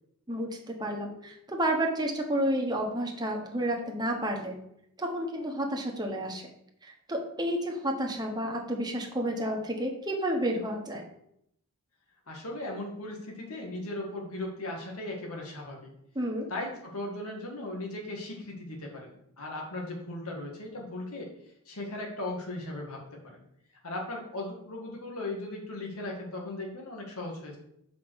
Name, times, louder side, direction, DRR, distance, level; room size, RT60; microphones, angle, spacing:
voice 1, 0.3-4.6 5.0-6.4 6.8-11.0 16.1-16.5, right 1 dB, 20° right, 1 dB, 1.1 m, -31 dB
voice 2, 12.3-15.9 16.5-21.3 21.7-23.4 23.8-27.6, left 2 dB, 80° left, 0 dB, 1.8 m, -37 dB
5.2 x 5.0 x 6.2 m, 0.76 s
head